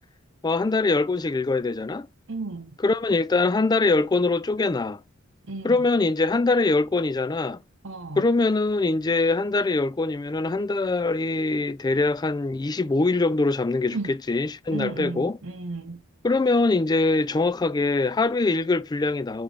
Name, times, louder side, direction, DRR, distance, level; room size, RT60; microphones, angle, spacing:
voice 1, 0.4-2.1 2.8-5.0 5.6-7.6 8.2-15.4 16.2-19.4, left 3 dB, 20° left, 0.4 m, -23 dB
voice 2, 2.3-2.8 5.5-5.9 7.8-8.2 13.9-14.1 14.7-16.0, right 3 dB, 70° right, 0.9 m, -34 dB
5.7 x 3.4 x 4.9 m
head